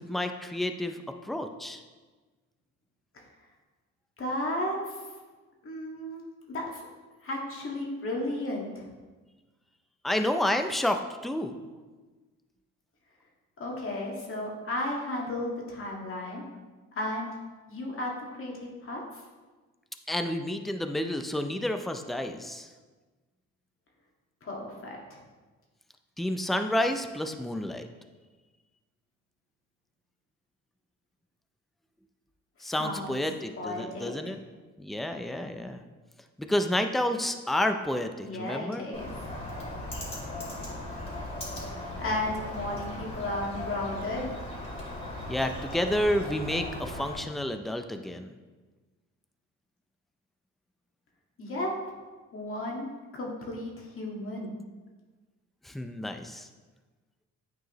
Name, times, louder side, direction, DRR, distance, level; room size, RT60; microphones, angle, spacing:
voice 1, 0.0-1.8 10.0-11.6 20.1-22.7 26.2-27.9 32.6-34.4 34.8-35.8 36.4-38.8 45.3-48.3 55.6-56.5, left 1 dB, ahead, 7 dB, 0.4 m, -30 dB
voice 2, 4.2-5.0 5.6-6.2 6.5-6.8 7.2-8.9 13.6-16.4 16.9-17.3 17.7-19.2 24.4-25.2 32.6-33.2 33.6-34.3 38.2-39.1 41.6-44.3 51.4-51.7 52.3-52.9 53.1-54.6, left 1 dB, 45° left, -2 dB, 1.8 m, -34 dB
Bird, 38.9-47.2, left 1 dB, 20° left, 2.1 m, -38 dB
9.1 x 4.7 x 3.0 m, 1.3 s
cardioid pair, 90°, 30 cm